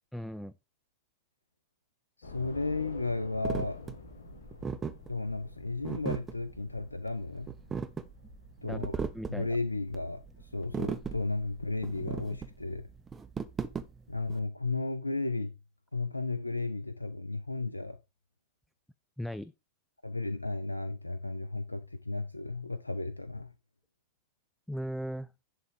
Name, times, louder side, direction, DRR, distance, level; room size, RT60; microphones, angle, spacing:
voice 1, 0.1-0.5 8.6-9.5 19.2-19.5 24.7-25.3, equal, ahead, 0.4 m, -38 dB
voice 2, 2.2-3.8 5.1-7.6 8.6-9.0 9.3-12.8 14.1-15.5 15.9-18.0 20.0-23.5, left 3 dB, 85° left, 0.5 m, -34 dB
Train / Subway metro underground, 2.2-11.7, left 3 dB, 70° left, 1.3 m, -50 dB
sound 1, 3.4-14.4, right 6 dB, 20° right, 0.7 m, -38 dB
11.0 x 3.6 x 4.8 m
figure-of-eight pair, 90°, 0 cm